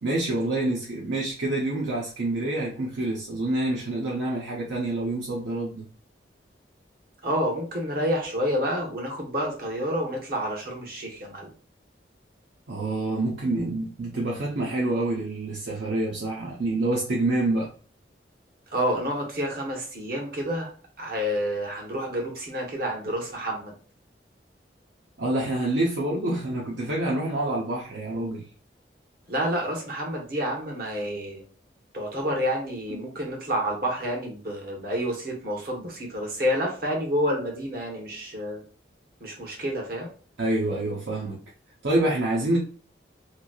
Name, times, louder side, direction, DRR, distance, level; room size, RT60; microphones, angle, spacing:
voice 1, 0.0-5.8 12.7-17.7 25.2-28.4 40.4-41.4 41.8-42.6, right 2 dB, 75° right, -3 dB, 0.6 m, -27 dB
voice 2, 7.2-11.5 18.7-20.7 21.0-23.7 29.3-31.4 31.9-38.6 39.2-40.1, equal, 55° right, -1 dB, 1.0 m, -29 dB
3.0 x 2.7 x 2.3 m, 0.40 s
head